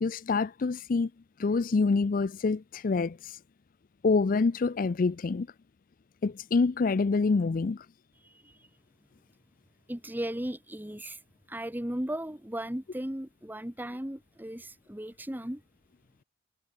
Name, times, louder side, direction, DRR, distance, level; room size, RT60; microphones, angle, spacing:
voice 1, 0.0-1.1 1.4-3.4 4.0-5.5 6.2-7.9, left 4 dB, 50° left, 0.4 m, -26 dB
voice 2, 8.2-8.7 9.9-11.2 11.5-15.6, right 1 dB, 10° right, 1.3 m, -36 dB
head